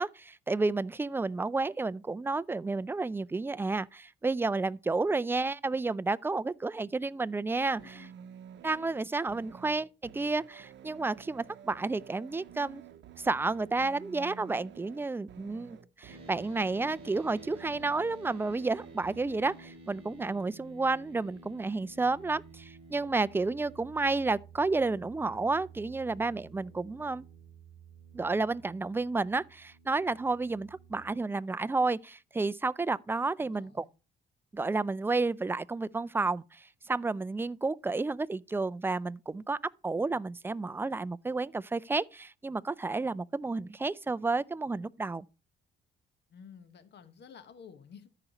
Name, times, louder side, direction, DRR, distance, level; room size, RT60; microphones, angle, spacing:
voice 1, 0.0-7.8 8.6-12.8 13.2-27.3 28.1-33.8 34.5-39.6 39.8-45.3, right 3 dB, 10° right, 0.3 m, -31 dB
voice 2, 7.8-8.1 33.4-33.9 46.3-48.1, left 7 dB, 60° left, 1.4 m, -52 dB
sound 1, 7.8-19.8, right 9 dB, 65° right, 0.8 m, -51 dB
sound 2, 16.1-31.1, right 2 dB, 30° right, 3.9 m, -53 dB
13.5 x 5.0 x 2.9 m
cardioid pair, 90°, 20 cm